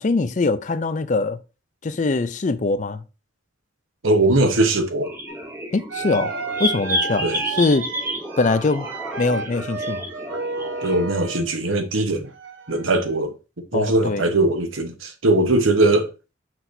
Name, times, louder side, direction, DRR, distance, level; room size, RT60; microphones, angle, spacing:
voice 1, 0.0-1.4 1.8-3.0 5.7-6.3 6.6-7.9 8.4-8.9 9.2-10.1 13.7-14.3, left 3 dB, 40° left, 0.4 m, -22 dB
voice 2, 4.0-5.1 7.2-7.4 10.8-12.3 12.7-13.4 13.7-16.1, right 2 dB, 90° right, 1.1 m, -20 dB
sound 1, 5.0-11.1, equal, 15° right, 0.8 m, -30 dB
sound 2, 5.3-5.4 5.9-11.5 12.2-13.2, right 4 dB, 70° right, 0.9 m, -32 dB
6.1 x 5.9 x 2.7 m
head